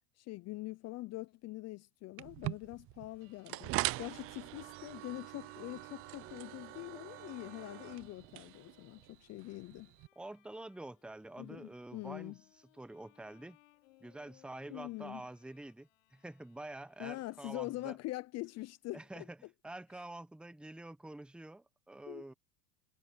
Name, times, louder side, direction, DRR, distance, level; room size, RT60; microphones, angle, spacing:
voice 1, 0.2-3.7 4.0-9.9 11.4-12.4 14.7-15.2 17.0-19.3 19.9-20.0 22.1-22.2, left 18 dB, 45° left, 0.6 m, -44 dB
sound 1, 2.2-10.1, right 19 dB, 40° right, 0.4 m, -42 dB
Bowed string instrument, 3.0-18.3, left 17 dB, 85° left, 6.1 m, -68 dB
Guitar, 3.2-9.1, right 37 dB, 70° right, 5.4 m, -66 dB
voice 2, 10.2-13.6 14.0-18.0 18.9-22.3, right 2 dB, 5° right, 1.0 m, -48 dB
supercardioid pair, 110°, 38 cm